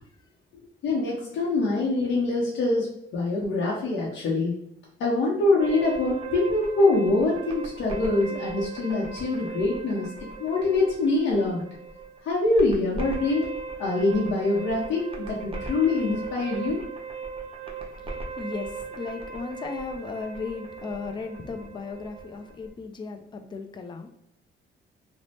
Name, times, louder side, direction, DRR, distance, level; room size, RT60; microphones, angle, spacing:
voice 1, 0.8-4.6 5.0-10.1 10.4-11.7 12.2-13.5 13.8-16.8, left 2 dB, 75° left, -3 dB, 0.6 m, -24 dB
sound 1, 5.6-22.7, right 5 dB, 30° right, 0.6 m, -37 dB
voice 2, 18.0-24.1, left 4 dB, 25° left, 6 dB, 0.3 m, -36 dB
3.1 x 2.0 x 2.7 m, 0.80 s
cardioid pair, 90°, 20 cm